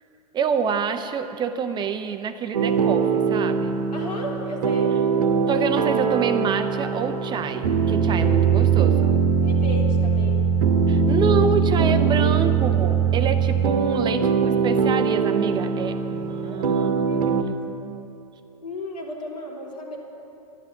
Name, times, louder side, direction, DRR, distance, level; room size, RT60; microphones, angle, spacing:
voice 1, 0.3-3.9 5.5-9.2 10.9-18.2, right 6 dB, 20° right, 8 dB, 0.7 m, -27 dB
sound 1, 2.5-17.4, right 6 dB, 70° right, 1.2 m, -21 dB
voice 2, 3.9-5.4 9.4-10.5 12.2-12.3 16.4-16.6 17.0-17.3 17.9-18.0 18.6-20.0, left 1 dB, 80° left, -2 dB, 3.3 m, -34 dB
12.0 x 11.0 x 7.2 m, 2.8 s
hypercardioid pair, 110°, 20 cm